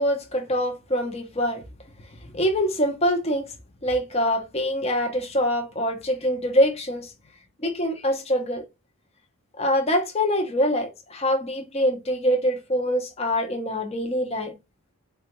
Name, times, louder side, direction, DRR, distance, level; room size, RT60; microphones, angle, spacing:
voice 1, 0.0-1.6 2.3-3.5 3.8-7.1 7.6-8.6 9.6-14.5, equal, 30° left, 0.7 m, -24 dB
4.2 x 2.3 x 2.9 m
head